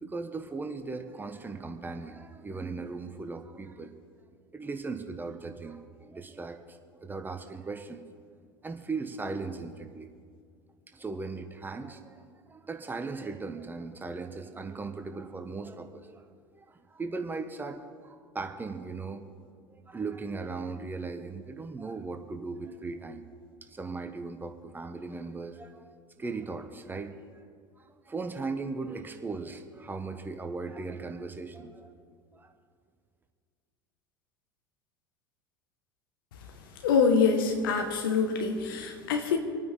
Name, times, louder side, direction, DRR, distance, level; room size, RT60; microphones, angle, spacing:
voice 1, 0.0-3.9 4.5-8.0 8.6-10.1 10.9-12.2 12.5-16.2 16.6-19.2 19.7-23.2 23.7-25.9 26.2-27.4 28.1-31.9 32.3-32.5, right 4 dB, 15° right, 7 dB, 1.2 m, -38 dB
voice 2, 36.8-39.4, left 5 dB, 70° left, 5 dB, 1.7 m, -25 dB
26.5 x 9.4 x 3.8 m, 2.1 s
figure-of-eight pair, 75°, 12 cm